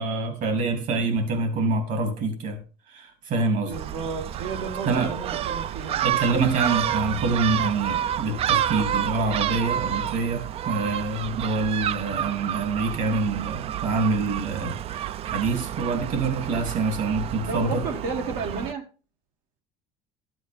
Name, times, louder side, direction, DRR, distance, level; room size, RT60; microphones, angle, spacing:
voice 1, 0.0-2.6 2.9-3.7 4.9-5.1 6.0-17.8, right 3 dB, 60° right, 3.1 m, -26 dB
Gull seagull, 3.7-18.7, right 11 dB, 40° right, 0.4 m, -29 dB
voice 2, 3.7-6.0 17.4-18.8, right 4 dB, 80° right, 2.7 m, -32 dB
13.0 x 7.9 x 3.6 m
cardioid pair, 115°, 15 cm